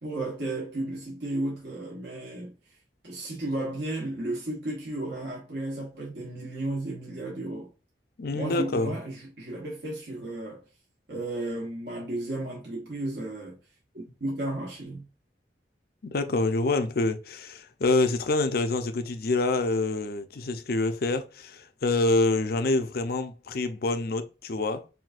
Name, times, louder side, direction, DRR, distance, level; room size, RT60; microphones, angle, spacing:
voice 1, 0.0-2.5 3.0-7.7 8.3-10.6 11.1-13.6 13.9-15.0, right 1 dB, 70° right, 1.3 m, -33 dB
voice 2, 8.2-8.9 16.0-24.9, left 2 dB, 55° left, 0.6 m, -26 dB
5.7 x 2.7 x 2.4 m
head